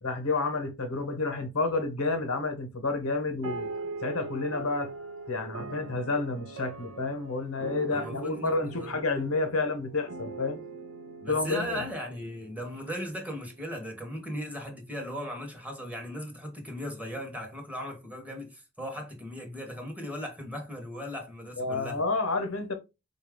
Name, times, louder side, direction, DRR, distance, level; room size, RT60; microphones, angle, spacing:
voice 1, 0.0-3.7 4.0-4.9 5.3-10.6 11.3-11.8 21.6-22.7, left 3 dB, 75° left, 0.9 m, -30 dB
sound 1, 3.4-13.2, right 3 dB, 75° right, 0.5 m, -41 dB
voice 2, 7.9-8.5 8.8-8.9 11.2-22.0, equal, 5° right, 0.8 m, -37 dB
4.1 x 2.3 x 3.4 m
head